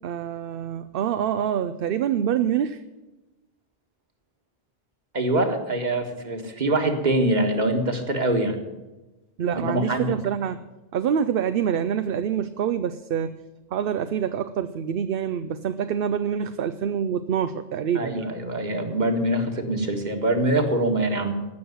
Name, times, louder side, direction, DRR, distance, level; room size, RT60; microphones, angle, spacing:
voice 1, 0.0-2.8 9.4-10.6 10.9-13.4 13.7-18.3, right 8 dB, 65° right, 11 dB, 0.8 m, -26 dB
voice 2, 5.1-8.6 9.5-10.1 17.9-21.3, right 1 dB, 45° right, 5 dB, 1.8 m, -24 dB
16.0 x 6.4 x 9.4 m, 1.1 s
omnidirectional pair, 1.0 m